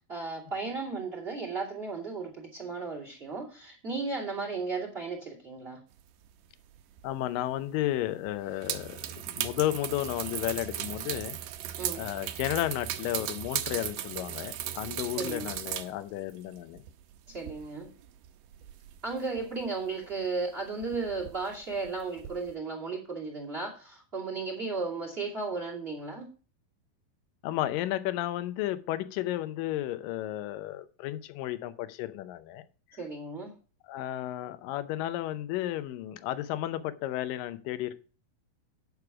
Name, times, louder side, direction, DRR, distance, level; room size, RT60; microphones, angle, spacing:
voice 1, 0.1-5.8 11.8-12.0 15.2-15.5 17.3-17.9 19.0-26.3 33.0-33.5, right 4 dB, 20° right, 2.2 m, -35 dB
sound 1, 6.8-7.1 7.4-7.5 8.3-15.9 16.2-19.7 20.0-20.3 20.6-22.5, right 11 dB, 75° right, 2.2 m, -37 dB
voice 2, 7.0-9.1 9.4-11.4 12.0-16.8 27.4-32.6 33.9-38.0, left 14 dB, 75° left, 2.3 m, -33 dB
9.6 x 6.5 x 4.8 m
omnidirectional pair, 4.2 m